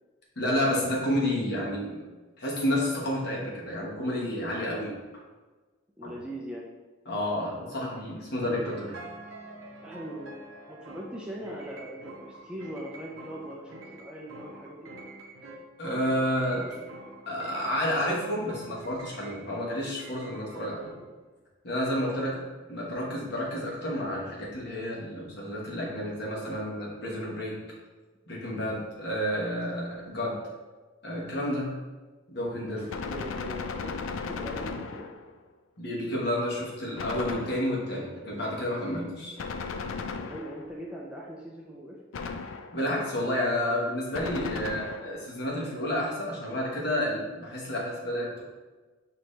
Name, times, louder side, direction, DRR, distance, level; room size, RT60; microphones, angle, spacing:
voice 1, 0.4-2.0 2.4-4.9 6.0-6.1 7.1-8.9 15.8-16.7 17.3-20.9 21.6-22.4 22.7-27.6 28.3-30.4 31.0-31.7 32.3-32.8 35.8-39.4 42.7-48.4, equal, 50° left, -4 dB, 1.2 m, -30 dB
voice 2, 6.0-6.7 8.4-8.6 9.8-10.4 10.7-15.0 16.1-16.8 20.5-21.1 21.8-22.2 27.0-27.2 32.8-35.1 40.1-42.0, equal, 5° right, -4 dB, 0.4 m, -41 dB
sound 1, 8.6-21.0, right 2 dB, 70° right, 0.6 m, -46 dB
Gunshot gunfire, 32.9-35.4 37.0-38.0 39.4-40.8 42.1-42.9 44.1-45.3, left 4 dB, 70° left, 0.3 m, -36 dB
6.0 x 2.8 x 3.2 m, 1.3 s
head